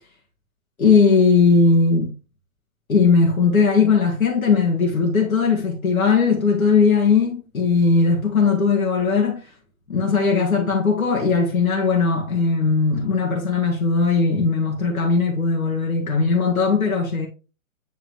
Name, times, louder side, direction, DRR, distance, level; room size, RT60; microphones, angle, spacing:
voice 1, 0.8-2.1 2.9-9.5 9.9-17.3, left 4 dB, 70° left, 1.8 m, -18 dB
9.5 x 3.7 x 3.1 m
figure-of-eight pair, 130°, 44 cm